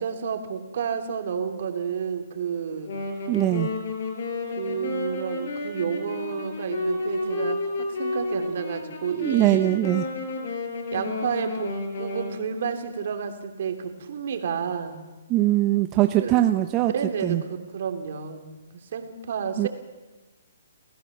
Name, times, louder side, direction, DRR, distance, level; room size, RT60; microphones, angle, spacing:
voice 1, 0.0-2.9 4.5-9.7 10.9-15.0 16.2-16.4 16.9-19.7, right 7 dB, 60° right, 6 dB, 3.1 m, -31 dB
Wind instrument woodwind instrument, 2.9-12.4, left 3 dB, 60° left, 5.7 m, -31 dB
voice 2, 3.3-3.7 9.1-10.0 15.3-16.9 17.2-17.4 19.6-19.7, right 15 dB, 25° right, 8 dB, 0.8 m, -21 dB
29.0 x 16.5 x 7.3 m, 1.2 s
hypercardioid pair, 145°, 0 cm